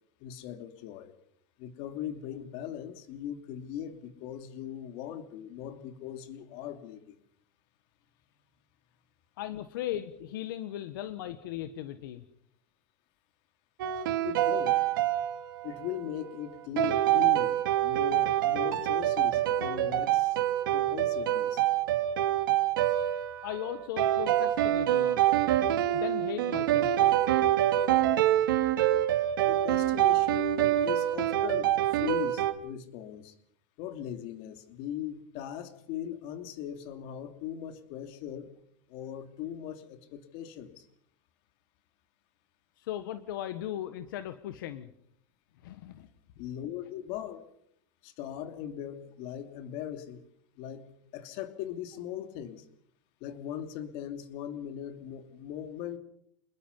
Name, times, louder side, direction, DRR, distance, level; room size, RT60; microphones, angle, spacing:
voice 1, 0.2-1.1 1.6-7.2 14.2-14.8 15.6-20.4 20.7-21.6 29.5-33.3 33.8-38.5 38.9-40.9 46.4-47.5 48.0-50.2 50.6-52.6 53.2-56.0, left 10 dB, 55° left, 8 dB, 2.9 m, -39 dB
voice 2, 9.4-12.2 23.4-25.2 25.9-27.2 42.8-44.9 45.6-46.1, left 12 dB, 80° left, 11 dB, 1.5 m, -37 dB
sound 1, 13.8-16.0 16.8-32.5, right 13 dB, 85° right, 2.5 m, -26 dB
27.5 x 21.0 x 5.5 m, 0.69 s
supercardioid pair, 140°, 11 cm